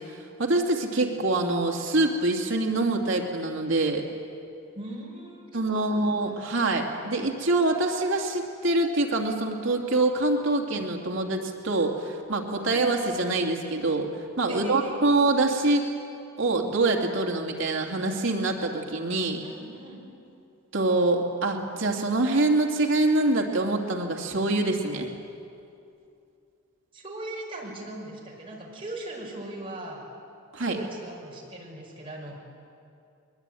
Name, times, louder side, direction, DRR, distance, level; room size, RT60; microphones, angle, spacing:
voice 1, 0.0-4.0 5.5-14.1 14.4-15.8 16.4-19.4 20.7-25.1 30.5-30.8, right 2 dB, 60° right, 2 dB, 2.6 m, -25 dB
voice 2, 4.7-6.2 12.6-12.7 14.5-15.0 19.4-20.0 26.9-30.0 30.6-32.4, right 1 dB, 25° right, -3 dB, 5.7 m, -39 dB
23.0 x 22.0 x 9.2 m, 2.6 s
head